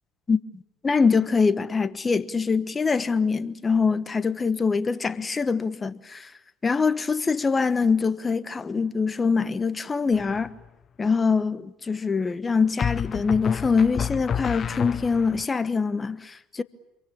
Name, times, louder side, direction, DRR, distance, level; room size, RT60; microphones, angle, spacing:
voice 1, 0.3-6.3 6.6-10.5 11.0-16.6, left 5 dB, 25° left, 1.2 m, -24 dB
sound 1, 10.1-10.7 12.8-15.5, left 8 dB, 40° left, 0.9 m, -29 dB
27.5 x 23.5 x 8.8 m
hypercardioid pair, 80°, 0 cm